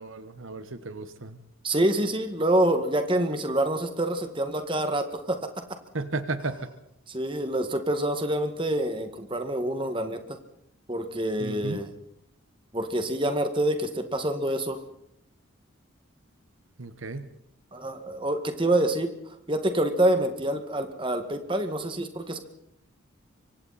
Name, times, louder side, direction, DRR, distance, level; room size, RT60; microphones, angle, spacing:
voice 1, 0.0-1.4 5.9-6.6 11.4-11.8 16.8-17.3, right 3 dB, 70° right, 11 dB, 1.3 m, -34 dB
voice 2, 1.6-5.4 7.1-10.4 10.9-11.9 12.7-14.8 17.7-19.1 19.5-22.4, right 1 dB, 25° right, 7 dB, 1.9 m, -26 dB
26.0 x 24.5 x 4.3 m, 0.75 s
head